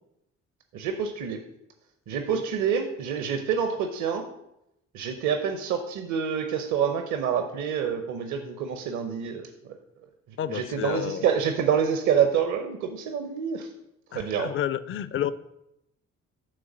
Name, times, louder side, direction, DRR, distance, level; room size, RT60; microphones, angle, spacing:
voice 1, 0.7-1.4 2.1-4.2 4.9-9.5 10.5-13.7 14.1-14.5, right 7 dB, 50° right, 6 dB, 0.7 m, -27 dB
voice 2, 10.4-11.3 14.1-15.3, left 10 dB, 35° left, 15 dB, 0.4 m, -30 dB
6.4 x 3.7 x 6.0 m, 0.83 s
figure-of-eight pair, 45°, 38 cm